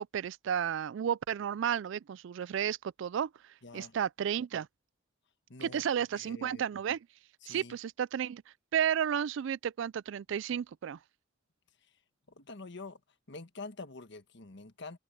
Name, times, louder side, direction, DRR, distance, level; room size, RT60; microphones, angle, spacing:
voice 1, 0.0-3.3 3.7-4.7 5.6-7.0 7.5-8.4 8.7-11.0, right 8 dB, 65° right, 0.3 m, -32 dB
voice 2, 3.6-4.0 5.5-5.8 6.1-6.6 7.4-7.8 11.9-12.0 12.3-13.0 13.3-15.0, left 3 dB, 60° left, 1.5 m, -46 dB
open air
head